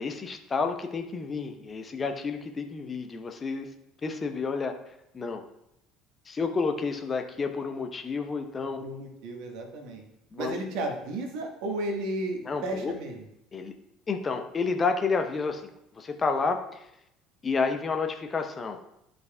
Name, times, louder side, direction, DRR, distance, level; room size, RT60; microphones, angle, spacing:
voice 1, 0.0-3.7 4.0-4.7 5.1-5.5 6.3-8.8 10.3-10.6 12.4-12.9 13.5-13.7 14.1-15.7 15.9-16.8 17.4-18.8, left 4 dB, 30° left, 5 dB, 0.8 m, -30 dB
voice 2, 8.8-10.0 10.4-13.2, right 1 dB, 60° right, 3 dB, 1.3 m, -33 dB
11.5 x 5.2 x 2.2 m, 0.82 s
figure-of-eight pair, 60°, 0 cm